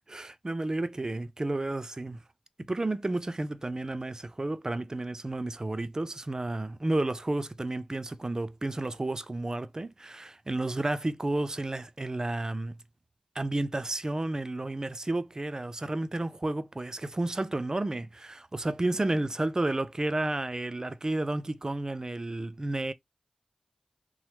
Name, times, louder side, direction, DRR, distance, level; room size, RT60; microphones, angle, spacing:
voice 1, 0.1-2.2 2.6-12.7 13.4-22.9, right 2 dB, 30° right, 0.3 m, -31 dB
3.0 x 2.0 x 3.1 m
wide cardioid pair, 55°, 2 cm